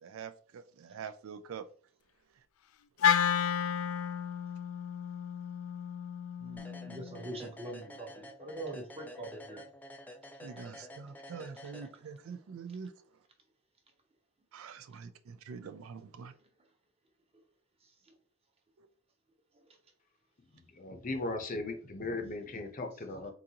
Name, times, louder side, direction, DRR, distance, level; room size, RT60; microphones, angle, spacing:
voice 1, 0.0-1.7 6.4-7.0 10.4-12.9 14.5-16.3 18.8-18.9, right 6 dB, 80° right, 0.4 m, -45 dB
Wind instrument woodwind instrument, 3.0-7.3, left 8 dB, 80° left, 0.4 m, -32 dB
sound 1, 6.6-12.4, left 1 dB, 10° left, 0.3 m, -50 dB
voice 2, 6.9-9.6 16.2-16.3 17.8-17.9, right 1 dB, 30° right, 0.9 m, -43 dB
voice 3, 20.5-23.3, left 2 dB, 40° left, 0.7 m, -37 dB
3.9 x 3.7 x 2.8 m
head